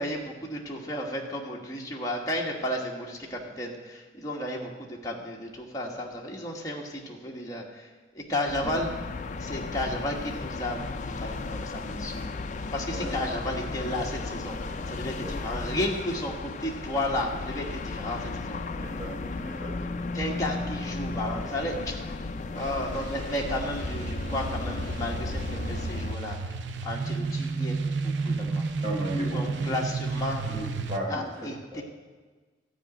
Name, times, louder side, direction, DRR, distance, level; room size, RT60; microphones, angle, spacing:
voice 1, 0.0-7.9 8.1-8.9 9.4-12.3 12.7-18.6 20.1-21.9 22.5-26.4 26.8-28.6 29.3-30.4 31.1-31.8, left 1 dB, 20° left, -2 dB, 1.3 m, -33 dB
sound 1, 8.5-26.2, left 3 dB, 40° left, 0.4 m, -35 dB
voice 2, 18.7-19.8 28.8-29.7 30.5-30.6 30.9-31.2 31.7-31.8, right 1 dB, 25° right, -5 dB, 3.9 m, -35 dB
sound 2, 22.6-31.0, right 3 dB, 75° right, 0.6 m, -32 dB
12.5 x 4.9 x 8.7 m, 1.4 s
head